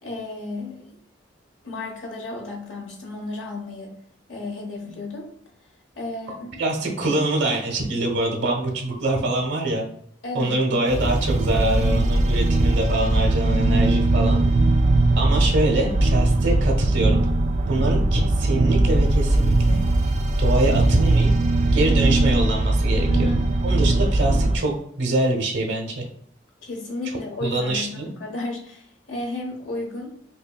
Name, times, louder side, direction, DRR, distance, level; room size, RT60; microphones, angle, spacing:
voice 1, 0.0-1.0 1.6-3.9 4.3-5.3 5.9-6.5 10.2-10.6 23.1-23.4 26.6-30.2, left 2 dB, 90° left, -1 dB, 1.2 m, -33 dB
voice 2, 6.6-9.8 10.3-14.4 15.2-17.2 17.7-19.8 20.4-21.3 21.7-23.3 23.6-26.0 27.4-28.1, right 2 dB, 70° right, 0 dB, 1.0 m, -24 dB
sound 1, 10.9-24.6, right 2 dB, 40° right, 0.3 m, -20 dB
5.5 x 2.3 x 2.3 m, 0.64 s
head